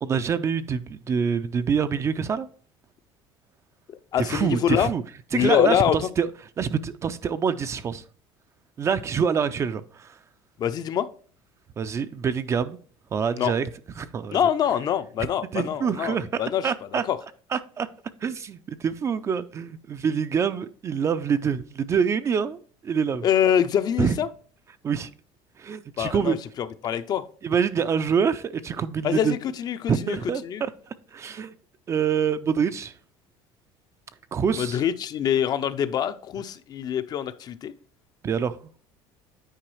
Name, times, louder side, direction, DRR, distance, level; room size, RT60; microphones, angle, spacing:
voice 1, 0.0-2.5 4.2-5.0 5.3-6.3 6.6-8.0 8.8-10.2 11.8-12.8 13.1-13.7 14.0-14.4 15.5-17.0 17.5-17.9 18.2-23.2 24.0-24.2 24.8-25.1 25.6-26.4 27.4-29.4 29.9-31.5 31.9-32.9 34.3-34.8 38.2-38.6, right 6 dB, 25° right, 0.3 m, -26 dB
voice 2, 4.1-4.9 5.3-6.0 10.6-11.1 13.4-13.5 14.3-16.7 17.1-17.2 23.2-24.3 26.0-27.2 29.0-30.2 30.4-30.6 34.6-37.7, left 9 dB, 35° left, 0.4 m, -24 dB
8.9 x 4.6 x 3.1 m
cardioid pair, 140°, 11 cm